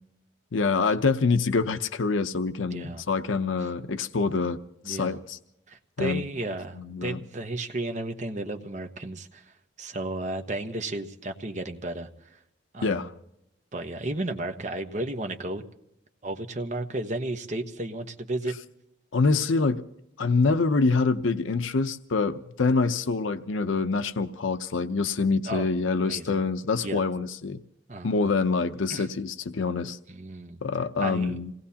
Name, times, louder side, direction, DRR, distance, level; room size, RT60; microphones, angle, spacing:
voice 1, 0.5-4.6 4.8-5.4 6.0-6.3 6.8-7.2 12.8-13.1 19.1-19.8 20.2-27.6 28.0-30.0 30.6-31.5, left 4 dB, 85° left, 9 dB, 0.7 m, -25 dB
voice 2, 2.6-3.0 4.8-5.2 5.7-12.1 12.7-13.1 13.7-15.6 16.2-18.6 25.4-25.7 26.0-26.4 26.8-27.0 27.9-28.3 28.9-29.1 30.1-30.6 31.0-31.4, right 2 dB, 40° right, 5 dB, 1.1 m, -33 dB
27.5 x 18.5 x 2.8 m, 0.82 s
head